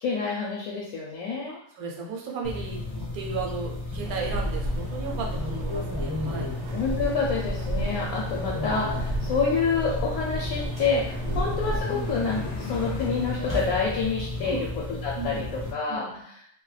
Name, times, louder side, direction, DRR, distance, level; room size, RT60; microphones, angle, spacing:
voice 1, 0.0-1.6 6.7-16.4, left 4 dB, 75° left, -3 dB, 1.0 m, -28 dB
voice 2, 1.5-6.6 7.8-7.9 11.2-11.3 14.4-14.6 15.1-15.5 15.9-16.2, right 4 dB, 80° right, 1 dB, 1.1 m, -35 dB
sound 1, 2.4-15.7, left 2 dB, 25° left, 0.4 m, -33 dB
sound 2, 4.0-11.8, right 1 dB, 65° right, 0.7 m, -33 dB
sound 3, 10.1-15.1, left 3 dB, 55° left, 0.8 m, -43 dB
2.6 x 2.2 x 3.2 m, 0.68 s
omnidirectional pair, 1.6 m